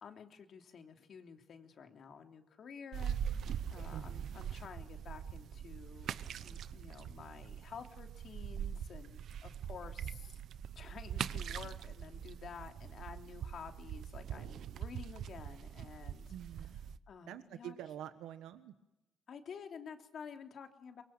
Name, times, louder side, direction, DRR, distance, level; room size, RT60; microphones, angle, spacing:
voice 1, 0.0-10.4 10.7-16.3 17.1-17.7 19.3-21.0, left 6 dB, 60° left, 5 dB, 3.2 m, -51 dB
sound 1, 2.9-17.0, right 9 dB, 70° right, 1.0 m, -42 dB
voice 2, 3.9-4.4 16.3-16.8 17.3-18.7, right 11 dB, 90° right, 10 dB, 1.4 m, -47 dB
25.0 x 23.0 x 9.0 m, 0.90 s
cardioid pair, 90°, 0 cm